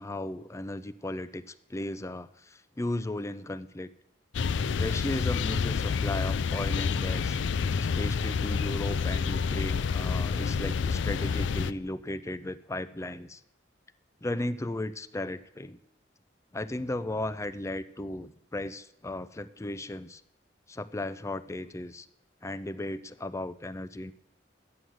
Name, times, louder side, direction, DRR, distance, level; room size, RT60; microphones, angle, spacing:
voice 1, 0.0-3.9 4.8-7.4 7.7-13.4 14.2-15.8 16.5-20.2 20.7-22.1 22.4-24.1, left 1 dB, 15° left, 14 dB, 0.5 m, -35 dB
sound 1, 4.3-11.7, left 5 dB, 70° left, 0.4 m, -28 dB
12.5 x 9.5 x 6.3 m, 0.82 s
head